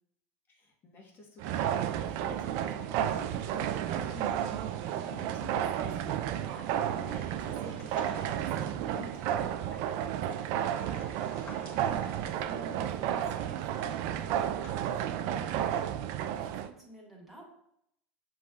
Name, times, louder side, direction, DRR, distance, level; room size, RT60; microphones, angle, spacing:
voice 1, 0.5-10.9, left 3 dB, 35° left, 0 dB, 1.3 m, -50 dB
sound 1, 1.4-16.7, right 10 dB, 60° right, 0.3 m, -32 dB
sound 2, 3.5-8.7 10.6-14.9 15.6-15.8, left 2 dB, 60° left, 1.1 m, -58 dB
sound 3, 6.5-13.1, left 1 dB, 15° left, 1.4 m, -58 dB
voice 2, 11.6-16.0 16.3-17.5, right 1 dB, ahead, -4 dB, 1.6 m, -52 dB
7.0 x 3.0 x 2.3 m, 0.75 s
supercardioid pair, 110°, 6 cm